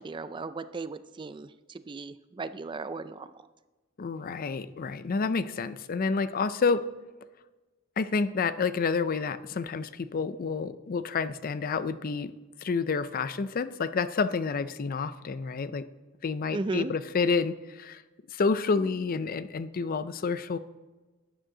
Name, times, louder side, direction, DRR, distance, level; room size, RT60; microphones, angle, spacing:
voice 1, 0.0-3.5 16.5-16.9, right 3 dB, 25° right, 13 dB, 0.4 m, -36 dB
voice 2, 4.0-6.8 8.0-12.3 12.6-15.9 16.2-18.0 18.3-20.6, left 4 dB, 45° left, 14 dB, 0.4 m, -29 dB
12.5 x 9.3 x 3.8 m, 1.2 s
head